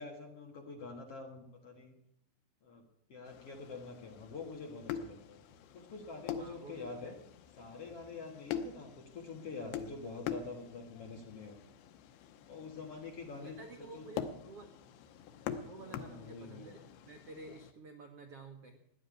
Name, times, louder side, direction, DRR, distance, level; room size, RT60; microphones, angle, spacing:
voice 1, 0.0-1.9 2.6-2.8 3.1-5.4 5.7-7.2 7.6-11.6 12.5-14.1 15.8-16.7, left 4 dB, 50° left, 2 dB, 1.9 m, -46 dB
sound 1, 3.2-17.7, left 8 dB, 85° left, 2.9 m, -45 dB
voice 2, 6.3-7.1 13.4-14.7 15.6-18.8, right 3 dB, 80° right, 5 dB, 1.3 m, -51 dB
15.5 x 10.5 x 8.2 m, 0.73 s
omnidirectional pair, 4.7 m